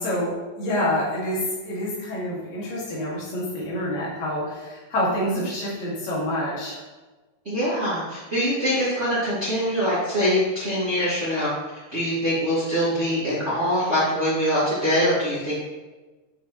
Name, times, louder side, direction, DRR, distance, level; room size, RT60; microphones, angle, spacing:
voice 1, 0.0-6.8, left 1 dB, 55° left, -6 dB, 3.3 m, -27 dB
voice 2, 7.4-11.5 11.9-15.6, equal, 35° right, -10 dB, 1.0 m, -23 dB
10.0 x 5.7 x 3.2 m, 1.2 s
omnidirectional pair, 5.9 m